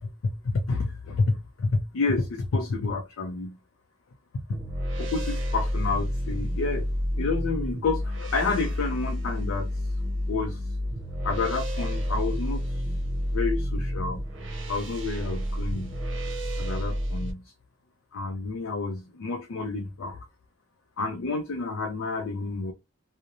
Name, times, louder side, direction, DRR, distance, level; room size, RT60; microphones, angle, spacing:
voice 1, 0.0-3.6 4.3-4.6 5.0-6.9 7.2-10.0 10.3-10.7 11.2-12.8 13.3-14.2 14.7-16.0 16.6-17.5 18.1-20.3 21.0-22.7, left 3 dB, 80° left, 0.4 m, -29 dB
sound 1, 4.5-17.3, equal, 60° right, 0.8 m, -30 dB
2.8 x 2.1 x 2.5 m
head